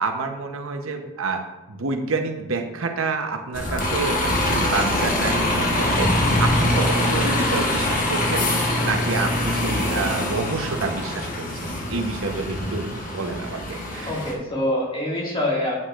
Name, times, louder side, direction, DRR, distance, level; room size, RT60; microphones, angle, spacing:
voice 1, 0.0-1.4 1.7-14.2, right 3 dB, 80° right, 4 dB, 0.8 m, -28 dB
Bus, 3.5-14.3, left 1 dB, 40° left, 1.2 m, -23 dB
voice 2, 6.7-7.1 14.1-15.7, left 1 dB, 25° left, -4 dB, 2.0 m, -26 dB
8.7 x 8.2 x 2.5 m, 1.0 s
head